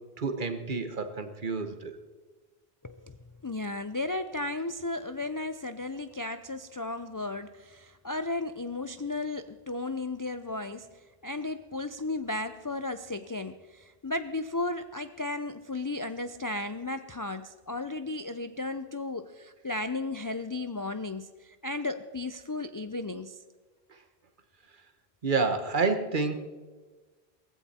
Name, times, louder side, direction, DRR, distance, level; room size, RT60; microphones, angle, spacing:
voice 1, 0.2-2.0 23.9-24.0 25.2-26.3, right 4 dB, 50° right, 8 dB, 1.3 m, -29 dB
voice 2, 2.8-3.2 3.4-23.4, left 2 dB, 35° left, 10 dB, 0.3 m, -34 dB
18.0 x 15.5 x 4.3 m, 1.3 s
omnidirectional pair, 1.1 m